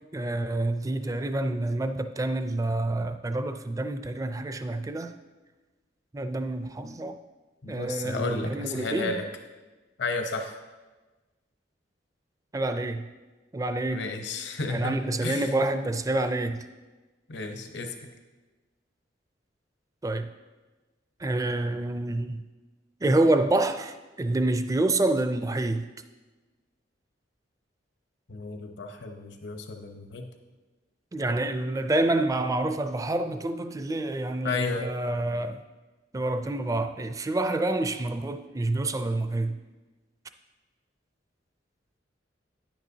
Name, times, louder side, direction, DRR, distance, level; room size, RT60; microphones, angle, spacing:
voice 1, 0.1-5.1 6.1-7.2 7.7-9.1 12.5-13.1 13.5-14.1 14.7-16.6 20.0-20.3 21.2-22.4 23.0-25.9 31.1-35.6 36.1-39.6, right 2 dB, 20° right, 0.4 m, -27 dB
voice 2, 7.6-9.3 10.0-10.6 13.9-15.5 17.3-17.9 28.3-30.3 34.4-34.9, left 3 dB, 65° left, 0.9 m, -32 dB
10.0 x 8.9 x 2.8 m
head